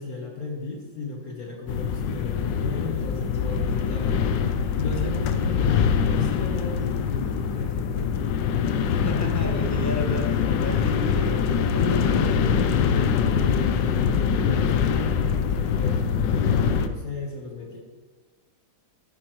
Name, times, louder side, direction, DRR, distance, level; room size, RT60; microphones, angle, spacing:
voice 1, 0.0-8.3 11.8-17.8, left 3 dB, 50° left, -1 dB, 1.6 m, -34 dB
sound 1, 1.7-16.9, left 7 dB, 75° left, 1.3 m, -24 dB
voice 2, 8.9-10.3 10.6-12.0, equal, 10° left, 1 dB, 0.8 m, -32 dB
12.5 x 9.2 x 3.1 m, 1.4 s
omnidirectional pair, 2.1 m